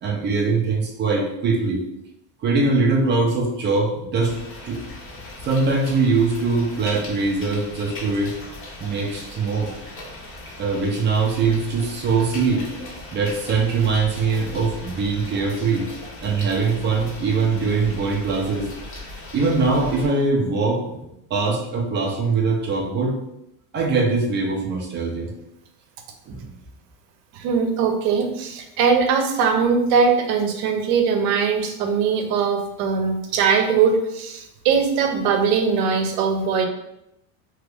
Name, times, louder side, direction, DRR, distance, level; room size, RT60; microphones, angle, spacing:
voice 1, 0.0-1.8 2.4-4.3 4.6-4.8 5.4-8.3 8.8-9.7 10.6-12.7 13.1-15.9 16.2-18.7 19.3-23.2 23.7-25.3 26.3-26.6, right 4 dB, 25° right, 1 dB, 0.4 m, -22 dB
sound 1, 4.2-20.1, left 2 dB, 30° left, 0.7 m, -38 dB
voice 2, 27.3-36.7, right 6 dB, 70° right, 5 dB, 0.7 m, -21 dB
2.9 x 2.4 x 3.3 m, 0.83 s
supercardioid pair, 135°, 43 cm